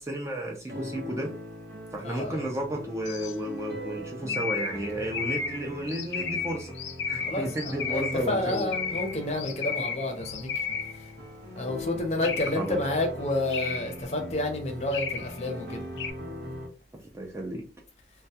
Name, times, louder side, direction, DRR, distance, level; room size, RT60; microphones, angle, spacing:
voice 1, 0.0-1.3 1.9-6.7 7.1-8.7 12.5-12.8 16.9-17.6, right 1 dB, 15° right, 0.3 m, -33 dB
sound 1, 0.7-16.7, left 1 dB, 75° right, 0.7 m, -41 dB
voice 2, 2.0-2.5 7.3-10.6 10.9-11.1 11.5-15.9, left 2 dB, 35° left, 0.6 m, -30 dB
sound 2, 3.1-3.4 4.3-11.1 12.2-12.7 13.5-14.1 14.9-15.4 16.0-16.1, left 6 dB, 85° left, 0.4 m, -33 dB
2.2 x 2.1 x 2.7 m
head